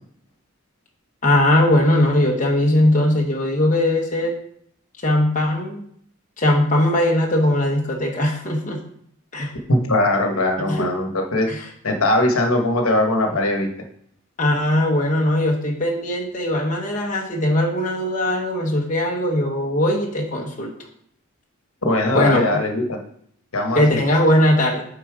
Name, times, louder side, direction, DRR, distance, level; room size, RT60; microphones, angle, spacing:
voice 1, 1.2-4.3 5.0-5.8 6.4-8.8 9.3-9.5 10.7-10.9 11.5-11.6 14.4-20.7 22.1-22.4 23.8-24.8, left 1 dB, 35° left, -1 dB, 0.8 m, -19 dB
voice 2, 9.7-11.5 11.8-13.7 21.8-23.0 23.5-24.0, left 1 dB, 70° left, 4 dB, 1.1 m, -20 dB
7.0 x 3.9 x 4.8 m, 0.67 s
head